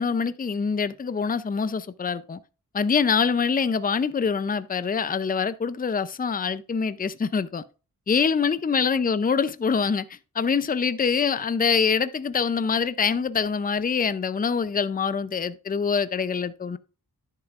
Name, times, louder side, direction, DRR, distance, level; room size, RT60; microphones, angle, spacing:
voice 1, 0.0-2.4 2.7-7.6 8.1-16.8, left 6 dB, 25° left, 0.5 m, -25 dB
11.0 x 6.8 x 2.5 m
wide cardioid pair, 80°, 36 cm